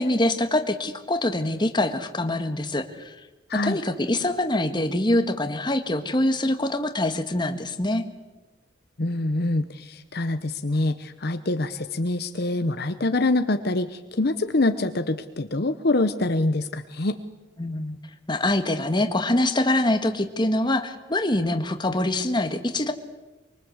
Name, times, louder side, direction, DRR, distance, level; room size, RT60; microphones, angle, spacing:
voice 1, 0.0-3.2 3.5-8.0 17.6-18.0 18.3-22.9, left 1 dB, 25° left, 7 dB, 1.7 m, -24 dB
voice 2, 9.0-17.2, left 2 dB, 55° left, 10 dB, 0.9 m, -25 dB
24.5 x 23.5 x 8.1 m, 1.1 s
head